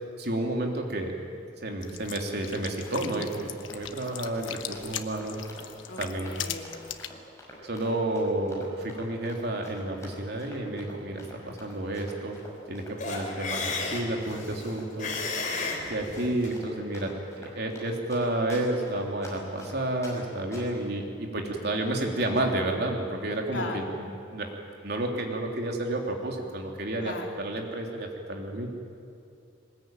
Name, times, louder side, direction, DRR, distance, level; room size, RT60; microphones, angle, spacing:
voice 1, 0.2-1.1 1.6-5.4 6.0-6.3 7.6-12.4 12.7-15.1 15.9-17.1 17.4-24.5 24.8-28.7, right 1 dB, 60° right, 1 dB, 3.1 m, -31 dB
sound 1, 1.8-7.1, left 10 dB, 85° left, 1.2 m, -39 dB
Run, 2.8-20.2 20.5-20.8, left 1 dB, 15° left, 5.9 m, -47 dB
voice 2, 5.9-6.7 15.3-15.8 23.5-23.8 27.0-27.3, left 2 dB, 65° left, 1 dB, 3.3 m, -38 dB
sound 2, 13.0-16.6, left 3 dB, 45° left, 3.3 m, -33 dB
22.5 x 20.0 x 9.1 m, 2.5 s
head